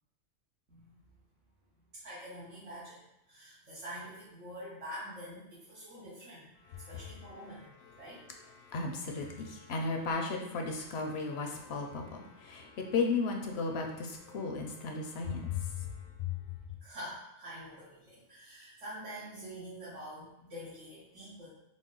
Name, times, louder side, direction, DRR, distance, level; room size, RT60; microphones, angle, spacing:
voice 1, 1.9-3.0 3.3-6.5 6.9-8.2 16.8-21.5, equal, 85° right, -11 dB, 1.5 m, -46 dB
voice 2, 6.7-7.1 7.8-16.3, left 4 dB, 65° left, 3 dB, 0.8 m, -35 dB
3.9 x 2.0 x 3.7 m, 0.82 s
omnidirectional pair, 1.2 m